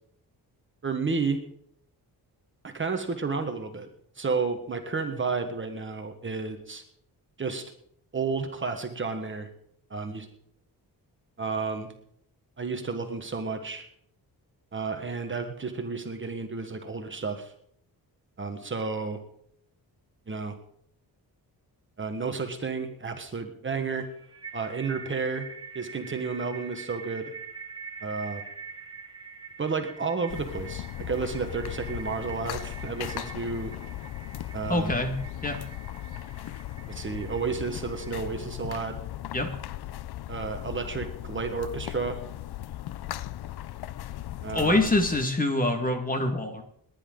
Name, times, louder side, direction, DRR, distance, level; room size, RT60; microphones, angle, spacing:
voice 1, 0.8-1.4 2.6-3.9 4.2-6.8 7.4-7.6 8.1-9.5 9.9-10.3 11.4-11.9 12.6-13.8 14.7-17.5 18.4-19.2 20.3-20.5 22.0-24.1 24.5-25.5 25.7-27.3 28.0-28.4 29.6-33.7 34.5-35.0 36.9-39.0 40.3-42.2 44.4-44.8, right 4 dB, 30° right, 5 dB, 1.3 m, -31 dB
sound 1, 23.9-38.2, right 6 dB, 10° right, 1.7 m, -45 dB
sound 2, 30.3-45.3, left 14 dB, 75° left, 0.6 m, -38 dB
voice 2, 34.7-35.6 39.3-39.5 44.5-46.6, left 2 dB, 20° left, 5 dB, 1.8 m, -25 dB
29.5 x 10.5 x 3.8 m, 0.69 s
wide cardioid pair, 170°, 39 cm